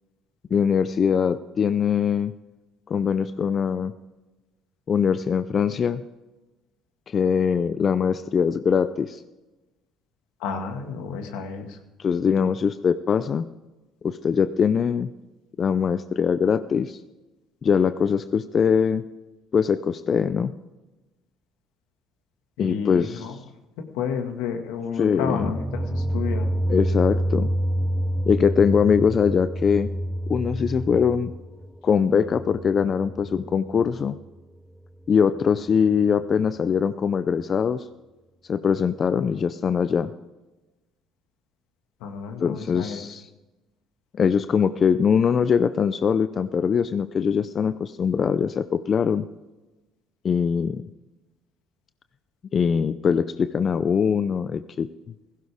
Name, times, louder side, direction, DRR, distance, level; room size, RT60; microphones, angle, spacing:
voice 1, 0.5-2.3 2.9-3.9 4.9-6.0 7.1-9.2 12.0-13.5 14.0-15.1 15.6-17.0 17.6-19.0 19.5-20.5 22.6-23.4 25.0-25.5 26.7-27.5 28.3-29.9 30.3-31.3 31.8-34.2 35.1-37.9 38.5-40.1 42.4-43.3 44.1-49.3 50.2-50.8 52.5-54.9, left 6 dB, 40° left, 12 dB, 0.6 m, -22 dB
voice 2, 10.4-11.7 22.6-23.3 23.9-26.5 42.0-43.0, left 6 dB, 85° left, 5 dB, 1.9 m, -31 dB
sound 1, 25.1-34.1, right 1 dB, ahead, 0.7 m, -28 dB
16.0 x 16.0 x 3.6 m, 1.1 s
supercardioid pair, 85°, 0 cm